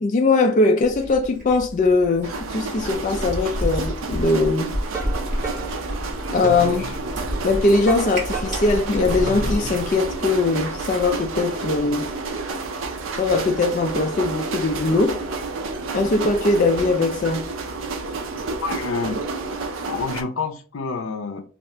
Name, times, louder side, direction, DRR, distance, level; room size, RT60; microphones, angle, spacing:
voice 1, 0.0-4.7 6.3-7.0 7.4-12.1 13.2-15.2 15.9-17.5, left 3 dB, 40° left, 0.3 m, -20 dB
Cat, 0.8-9.8, equal, 40° right, 1.2 m, -31 dB
sound 1, 2.2-20.2, right 3 dB, 80° right, 0.5 m, -30 dB
sound 2, 4.9-9.9, right 2 dB, 15° right, 0.7 m, -33 dB
voice 2, 18.6-19.2 19.9-21.4, left 4 dB, 85° left, 0.6 m, -28 dB
2.7 x 2.4 x 3.2 m
head